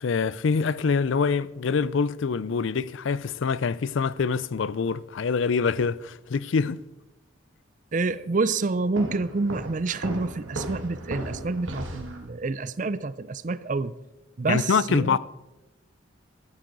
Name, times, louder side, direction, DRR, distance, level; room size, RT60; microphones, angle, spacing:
voice 1, 0.0-6.8 14.5-15.2, left 5 dB, 70° left, 0.4 m, -25 dB
voice 2, 7.9-13.9 14.4-15.2, right 3 dB, 40° right, 0.5 m, -28 dB
Walk footsteps, 9.0-12.3, right 1 dB, 70° right, 1.6 m, -36 dB
13.5 x 13.0 x 4.0 m
head